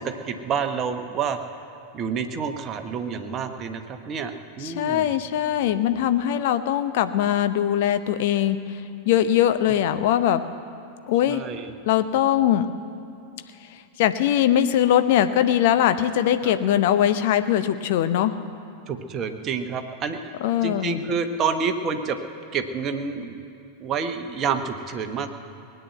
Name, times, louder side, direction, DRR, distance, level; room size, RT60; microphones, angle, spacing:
voice 1, 0.0-1.4 1.9-5.1 9.9-10.0 11.3-11.7 16.4-16.5 18.9-20.3 20.6-22.2 22.5-23.4 23.8-25.4, right 6 dB, 30° right, 6 dB, 1.2 m, -28 dB
voice 2, 4.6-8.6 9.0-10.4 11.1-11.4 11.9-12.7 14.0-18.3 20.4-21.0, left 11 dB, 50° left, 10 dB, 0.8 m, -21 dB
19.5 x 9.2 x 8.0 m, 2.7 s
figure-of-eight pair, 90°, 0 cm